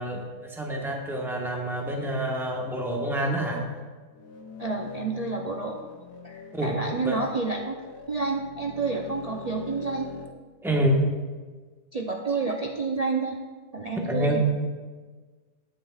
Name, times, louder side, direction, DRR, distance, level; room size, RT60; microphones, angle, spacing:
voice 1, 0.0-3.6 6.5-6.8 7.0-7.2 10.6-11.0 14.1-14.4, right 1 dB, ahead, -1 dB, 1.0 m, -27 dB
sound 1, 4.1-10.3, left 5 dB, 75° left, 1.3 m, -43 dB
voice 2, 4.6-5.8 6.2-7.7 8.1-10.1 11.9-13.4 13.7-14.4, right 4 dB, 85° right, 0 dB, 0.3 m, -29 dB
20.5 x 7.6 x 2.4 m, 1.4 s
omnidirectional pair, 1.7 m